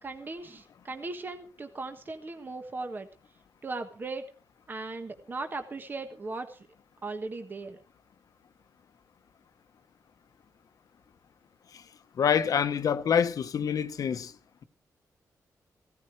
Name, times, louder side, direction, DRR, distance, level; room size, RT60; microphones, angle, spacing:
voice 1, 0.0-3.1 3.6-4.2 4.7-6.6 7.0-7.8, right 3 dB, 35° right, 1.4 m, -38 dB
voice 2, 12.2-14.3, left 7 dB, 70° left, 1.1 m, -26 dB
16.5 x 13.0 x 4.7 m
wide cardioid pair, 125°, 6 cm